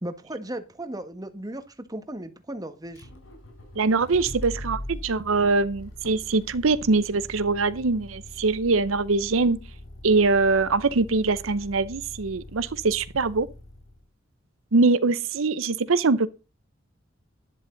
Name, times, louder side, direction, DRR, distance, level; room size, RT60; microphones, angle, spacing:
voice 1, 0.0-3.1, right 1 dB, 20° right, 1.6 m, -36 dB
Motor vehicle (road), 2.9-14.0, left 1 dB, 90° left, 4.6 m, -42 dB
voice 2, 3.8-9.6 10.0-13.5 14.7-16.3, right 3 dB, 85° right, 0.7 m, -23 dB
11.0 x 11.0 x 3.9 m
head